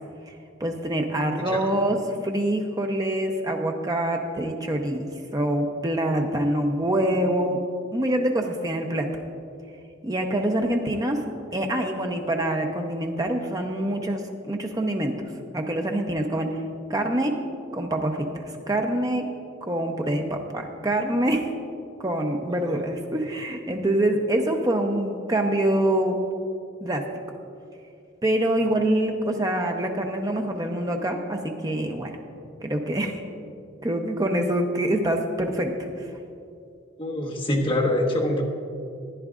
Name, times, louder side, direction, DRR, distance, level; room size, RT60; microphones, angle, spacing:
voice 1, 0.6-7.6 7.9-9.1 10.0-11.2 11.5-15.2 15.5-16.6 16.9-17.3 17.7-19.3 19.6-21.5 22.0-26.2 26.8-27.0 28.2-32.1 32.6-33.2 33.8-36.1, right 1 dB, 15° right, 3 dB, 0.6 m, -25 dB
voice 2, 37.0-38.4, left 1 dB, 25° left, -3 dB, 1.3 m, -24 dB
14.5 x 10.0 x 2.4 m, 2.5 s
head